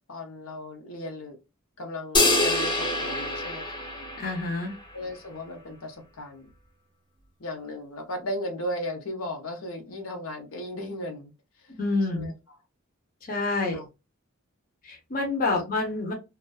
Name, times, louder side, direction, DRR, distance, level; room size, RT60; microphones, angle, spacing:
voice 1, 0.1-1.4 1.8-3.9 4.9-6.5 7.4-11.3 12.1-12.6 13.7-13.9 15.5-15.6, left 1 dB, 75° left, 0.8 m, -36 dB
sound 1, 2.1-4.7, left 2 dB, 20° left, 0.9 m, -25 dB
voice 2, 4.2-4.7 11.7-12.3 13.3-13.8 14.8-16.1, left 3 dB, 40° left, 0.7 m, -27 dB
2.4 x 2.3 x 2.3 m
head